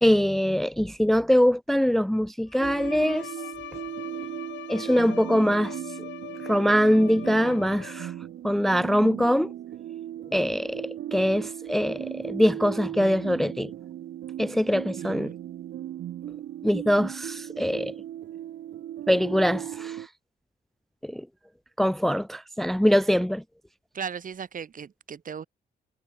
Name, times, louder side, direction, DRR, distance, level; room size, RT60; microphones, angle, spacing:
voice 1, 0.0-3.3 4.7-5.8 6.4-8.1 8.4-9.5 10.3-13.7 14.4-15.3 16.6-17.9 19.1-20.1 21.0-21.3 21.8-23.4, equal, ahead, 0.6 m, -23 dB
Bowed string instrument, 2.5-8.3, left 12 dB, 90° left, 3.4 m, -42 dB
sound 1, 2.6-20.1, right 12 dB, 70° right, 0.9 m, -37 dB
voice 2, 15.0-15.3 23.9-25.5, right 7 dB, 45° right, 3.9 m, -37 dB
cardioid pair, 120°, 18 cm